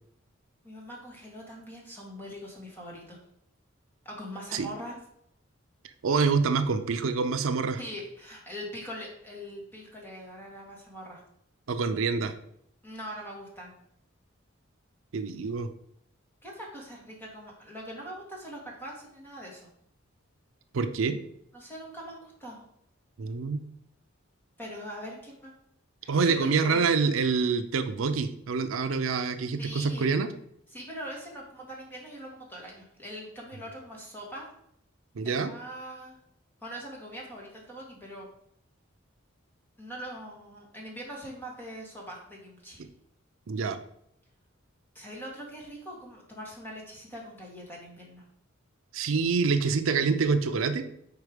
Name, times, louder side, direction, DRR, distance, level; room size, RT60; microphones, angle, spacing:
voice 1, 0.6-3.2 4.0-5.0 7.8-11.2 12.8-13.8 16.4-19.7 21.5-22.6 24.6-25.5 26.0-26.8 29.6-30.1 30.7-34.5 35.2-36.2 36.6-38.3 39.8-42.8 44.9-48.2, equal, 10° left, -3 dB, 1.6 m, -42 dB
voice 2, 6.0-7.8 11.7-12.3 15.1-15.7 20.7-21.2 23.2-23.6 26.1-30.3 35.2-35.5 43.5-43.8 48.9-50.8, right 5 dB, 80° right, 9 dB, 0.5 m, -26 dB
4.7 x 4.6 x 5.0 m, 0.73 s
head